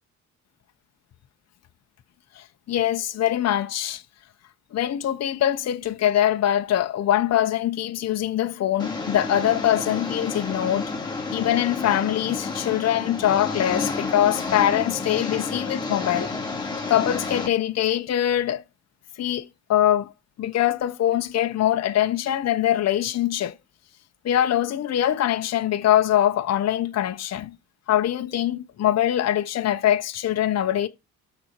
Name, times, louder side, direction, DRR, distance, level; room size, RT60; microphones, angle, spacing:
voice 1, 2.4-4.0 4.7-10.8 11.3-16.3 16.9-18.6 19.2-20.1 20.4-23.6 24.2-27.5 27.9-30.9, left 11 dB, 60° left, 0.9 m, -23 dB
Engine, 8.8-17.5, left 3 dB, 15° left, 3.7 m, -30 dB
12.5 x 4.2 x 4.6 m
cardioid pair, 90°, 30 cm